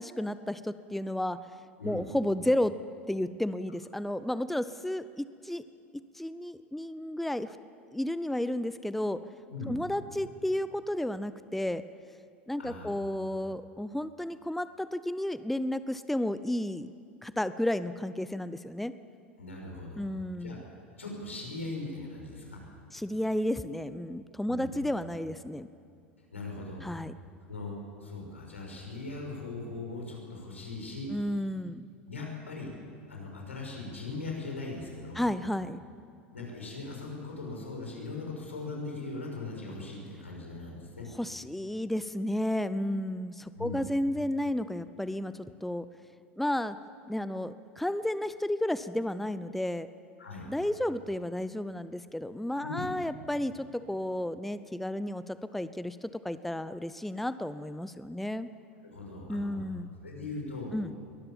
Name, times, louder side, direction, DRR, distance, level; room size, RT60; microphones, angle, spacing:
voice 1, 0.0-1.4 1.8-2.8 3.1-5.6 5.9-7.6 7.9-9.2 9.7-11.8 12.5-16.9 17.2-18.9 20.0-20.6 22.9-25.7 26.8-27.1 31.1-31.9 35.1-35.8 41.2-45.9 46.4-46.8 47.1-49.9 50.5-58.5 59.3-59.9 60.7-61.0, left 1 dB, 5° left, 14 dB, 0.6 m, -32 dB
voice 2, 12.6-12.9 19.4-20.0 20.3-20.6 21.0-22.6 24.5-24.7 26.3-26.9 27.5-31.1 32.1-32.7 33.1-35.3 36.3-41.1 43.5-43.8 50.2-50.5 52.6-52.9 58.8-59.6 60.0-60.8, left 3 dB, 80° left, -1 dB, 6.1 m, -39 dB
22.5 x 19.5 x 7.3 m, 2.3 s
figure-of-eight pair, 80°, 7 cm